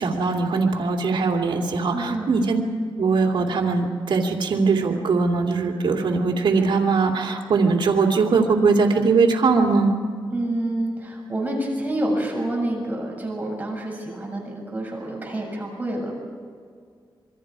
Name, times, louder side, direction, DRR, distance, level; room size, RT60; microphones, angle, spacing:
voice 1, 0.0-2.6 3.0-10.0, right 4 dB, 70° right, 1 dB, 2.8 m, -21 dB
voice 2, 1.9-2.3 10.3-16.1, right 1 dB, 20° right, -2 dB, 7.0 m, -28 dB
27.0 x 23.0 x 4.9 m, 2.1 s
wide cardioid pair, 105°, 9 cm